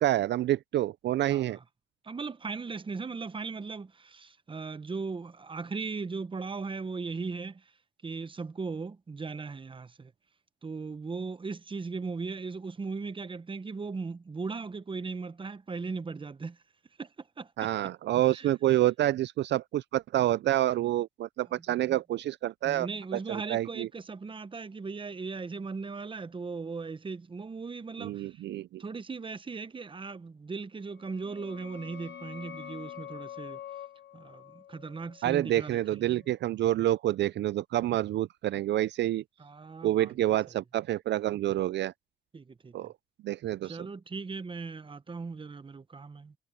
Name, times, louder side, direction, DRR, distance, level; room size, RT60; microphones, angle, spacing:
voice 1, 0.0-1.6 17.6-22.9 23.1-23.9 28.0-28.8 35.2-39.2 39.8-41.9 42.7-42.9 43.2-43.8, right 14 dB, 60° right, 0.4 m, -28 dB
voice 2, 1.3-1.6 2.0-7.7 8.0-10.1 10.6-16.6 17.0-17.7 18.3-18.5 21.9-22.0 22.6-28.4 28.8-33.6 34.1-36.2 39.4-40.1 42.3-42.9 43.6-46.3, right 4 dB, 25° right, 1.0 m, -38 dB
sound 1, 30.9-36.3, left 9 dB, 60° left, 1.8 m, -46 dB
cardioid pair, 90°, 20 cm